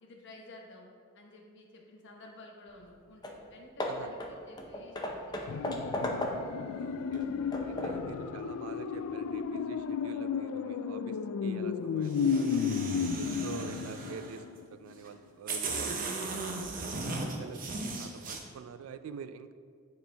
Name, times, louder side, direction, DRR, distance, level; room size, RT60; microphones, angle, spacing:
voice 1, 0.0-0.9 1.1-6.8 7.6-8.3, left 2 dB, 55° left, 0 dB, 1.1 m, -53 dB
Hammer / Wood, 2.9-3.0 3.2-3.5 3.8-6.7 7.1-8.1, left 1 dB, 20° left, 0.6 m, -36 dB
sound 1, 5.5-14.6 14.9-15.0, left 6 dB, 75° left, 0.3 m, -33 dB
voice 2, 6.7-12.6 13.0-14.5 14.7-17.6 18.0-19.5, right 6 dB, 65° right, 11 dB, 0.3 m, -46 dB
sound 2, 12.0-14.4 15.1-15.2 15.5-18.4, right 3 dB, 40° right, 0.7 m, -37 dB
9.4 x 4.3 x 3.4 m, 2.1 s
head